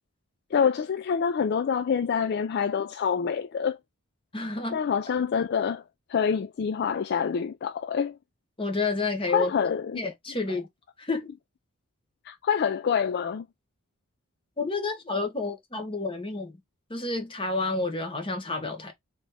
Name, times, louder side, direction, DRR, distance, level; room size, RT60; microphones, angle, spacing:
voice 1, 0.5-3.8 4.7-5.8 6.1-8.2 9.3-10.0 12.2-13.5, left 7 dB, 50° left, 0.3 m, -26 dB
voice 2, 4.3-4.8 8.6-9.5 10.0-10.7 11.0-11.3 14.6-16.5 16.9-18.9, left 3 dB, 25° left, 1.3 m, -29 dB
3.9 x 3.5 x 3.2 m
head